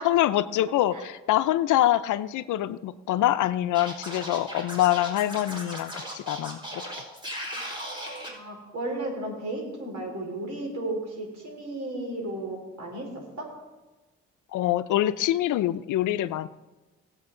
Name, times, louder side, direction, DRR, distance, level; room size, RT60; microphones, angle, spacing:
voice 1, 0.0-7.0 14.5-16.5, left 13 dB, 80° left, 13 dB, 0.6 m, -25 dB
Scratching (performance technique), 3.7-8.3, equal, 15° right, 4.5 m, -37 dB
voice 2, 8.3-13.5, right 2 dB, 65° right, 0 dB, 4.8 m, -34 dB
19.5 x 8.0 x 3.9 m, 1.1 s
cardioid pair, 90°, 30 cm